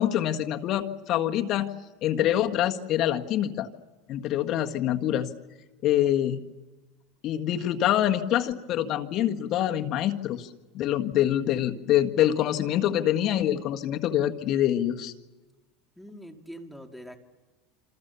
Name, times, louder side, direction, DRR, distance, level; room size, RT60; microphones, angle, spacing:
voice 1, 0.0-1.7 2.0-3.7 4.1-5.3 5.8-6.4 7.2-10.5 10.7-15.1, left 12 dB, 45° left, 5 dB, 1.7 m, -25 dB
voice 2, 16.0-17.2, equal, ahead, 3 dB, 2.4 m, -43 dB
27.0 x 27.0 x 7.0 m, 1.2 s
supercardioid pair, 135°, 0 cm